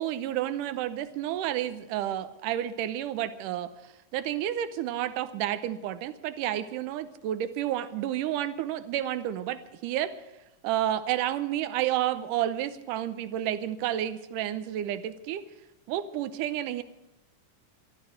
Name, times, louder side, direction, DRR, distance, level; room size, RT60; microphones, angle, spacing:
voice 1, 0.0-3.7 4.1-10.1 10.6-15.4 15.9-16.8, right 12 dB, 85° right, 12 dB, 2.3 m, -30 dB
14.5 x 12.5 x 6.4 m, 0.91 s
omnidirectional pair, 3.7 m